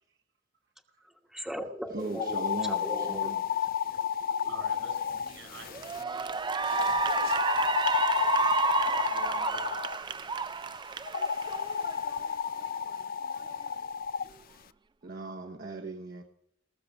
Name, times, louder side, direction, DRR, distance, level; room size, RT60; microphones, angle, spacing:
voice 1, 1.0-3.4 4.4-4.5 6.5-6.9, equal, ahead, 3 dB, 1.2 m, -39 dB
voice 2, 1.9-3.4 15.0-16.2, right 2 dB, 50° right, 3 dB, 1.0 m, -38 dB
sound 1, 2.1-6.0 6.7-10.0 11.1-14.3, left 8 dB, 50° left, 0.4 m, -31 dB
voice 3, 4.5-6.3 9.0-9.8, right 2 dB, 80° right, 6 dB, 4.8 m, -48 dB
Cheering / Applause, 5.0-5.3 5.7-12.2, right 5 dB, 25° right, 0.4 m, -30 dB
19.0 x 6.8 x 6.0 m, 0.71 s
head